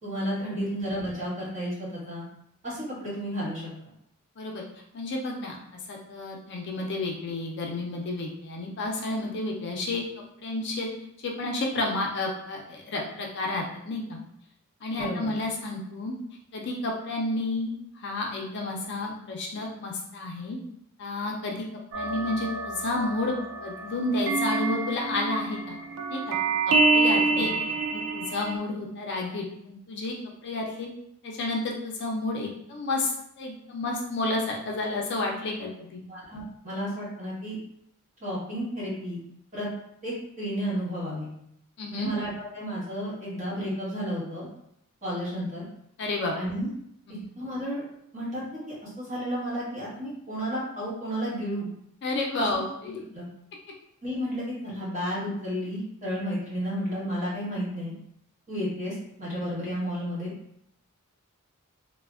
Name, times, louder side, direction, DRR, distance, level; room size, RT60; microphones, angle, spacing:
voice 1, 0.0-2.2 2.6-3.7 14.9-15.3 27.3-27.7 36.1-37.6 38.2-39.2 39.5-39.7 40.0-41.3 41.9-44.5 45.0-45.6 46.3-46.7 47.4-47.8 48.1-48.4 48.7-51.7 52.4-52.5 52.8-53.2 54.0-57.9 58.5-60.3, equal, 35° right, -8 dB, 1.1 m, -32 dB
voice 2, 4.9-5.6 5.9-10.0 10.4-10.9 11.2-14.2 14.8-16.1 16.5-20.6 21.0-21.6 21.9-25.8 26.1-26.4 26.7-27.5 27.9-30.1 30.4-30.9 31.2-33.1 33.4-36.0 41.8-42.1 46.0-46.3 47.1-47.2 52.0-53.0, left 2 dB, 50° left, 0 dB, 0.4 m, -31 dB
sound 1, 21.9-28.6, right 3 dB, 65° right, 0.4 m, -27 dB
3.1 x 2.1 x 2.4 m, 0.74 s
head